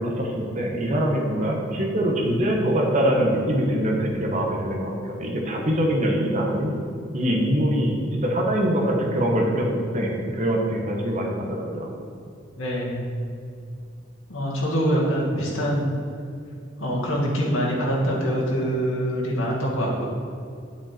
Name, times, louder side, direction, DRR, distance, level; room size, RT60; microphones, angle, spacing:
voice 1, 0.0-6.7 7.1-11.9 15.3-15.4, equal, 35° right, -1 dB, 1.2 m, -23 dB
voice 2, 12.6-13.0 14.3-16.0 16.8-20.0, equal, 90° left, -4 dB, 2.1 m, -24 dB
9.0 x 5.7 x 4.4 m, 2.5 s
head